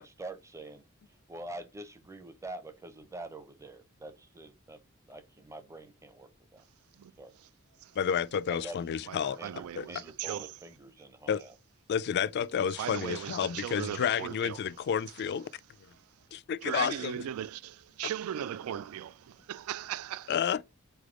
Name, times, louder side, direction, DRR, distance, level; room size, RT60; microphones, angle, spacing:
voice 1, 0.0-4.8 5.1-6.6 7.2-7.3 8.5-8.9 9.4-11.5, right 2 dB, 15° right, 0.6 m, -45 dB
voice 2, 8.0-9.4 9.8-9.9 11.3-11.4 11.9-15.5 16.3-17.1 20.3-20.6, left 8 dB, 50° left, 0.3 m, -30 dB
voice 3, 9.1-10.5 12.7-14.6 16.0-16.1 16.6-20.4, right 10 dB, 75° right, 0.3 m, -38 dB
4.1 x 3.4 x 3.7 m
head